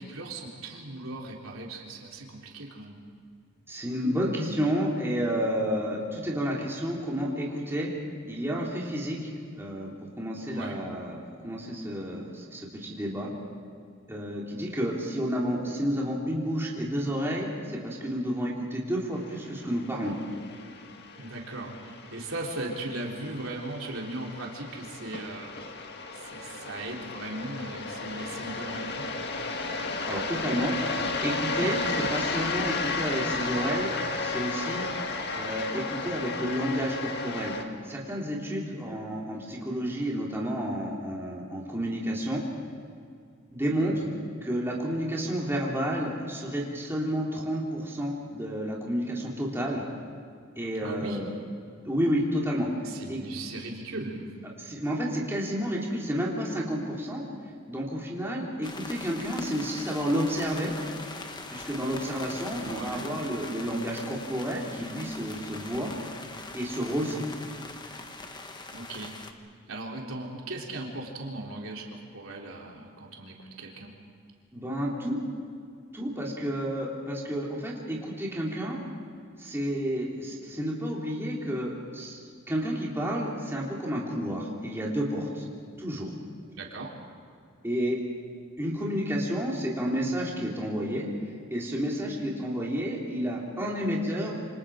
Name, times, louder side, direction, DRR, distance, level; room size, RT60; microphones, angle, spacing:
voice 1, 0.0-3.0 10.5-10.8 21.2-25.6 26.1-29.1 31.5-31.8 43.7-44.1 50.8-51.2 52.8-54.3 62.6-63.1 68.7-69.1 69.7-73.9 86.5-86.9, right 2 dB, 80° right, -1 dB, 3.5 m, -38 dB
voice 2, 3.7-7.9 8.2-11.2 11.4-13.3 14.1-20.1 29.7-31.8 32.1-33.9 34.2-34.9 35.4-42.4 43.5-44.0 44.4-49.8 50.6-51.3 51.8-52.7 53.1-53.2 54.6-57.2 57.7-60.7 61.5-65.9 66.5-67.3 74.5-75.2 75.9-78.8 79.4-82.2 82.5-85.5 85.8-86.1 87.6-88.0 88.6-91.1 91.5-94.4, equal, 10° right, -4 dB, 3.7 m, -30 dB
sound 1, 19.3-37.6, left 3 dB, 55° left, 1.8 m, -33 dB
sound 2, 58.6-69.3, left 3 dB, 20° left, 1.3 m, -42 dB
27.5 x 26.5 x 5.1 m, 2.2 s
head